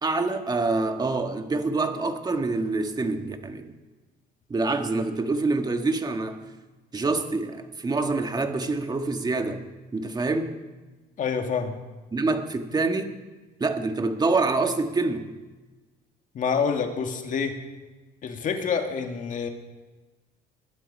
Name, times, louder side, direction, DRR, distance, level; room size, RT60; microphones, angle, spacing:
voice 1, 0.0-3.7 4.5-6.4 6.9-9.6 9.9-10.5 12.1-13.2 13.6-15.2, right 3 dB, 25° right, 6 dB, 1.7 m, -26 dB
voice 2, 11.2-11.8 16.3-17.6 18.2-19.5, left 6 dB, 50° left, 5 dB, 2.1 m, -27 dB
21.5 x 11.5 x 5.5 m, 1.2 s
cardioid pair, 110°, 17 cm